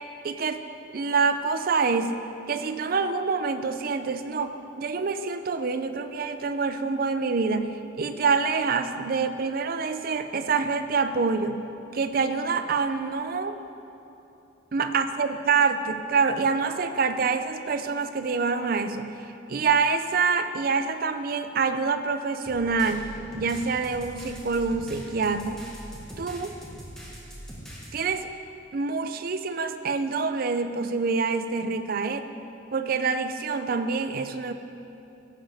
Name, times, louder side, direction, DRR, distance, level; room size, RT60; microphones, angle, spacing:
voice 1, 0.2-0.6 0.9-2.1 2.5-11.6 11.9-13.6 14.7-19.2 19.5-25.6 26.2-26.6 27.9-28.3 28.7-32.3 32.7-34.5, right 4 dB, 50° right, 9 dB, 0.4 m, -26 dB
sound 1, 22.5-27.9, equal, 5° left, 1.5 m, -42 dB
15.5 x 7.3 x 3.5 m, 2.9 s
head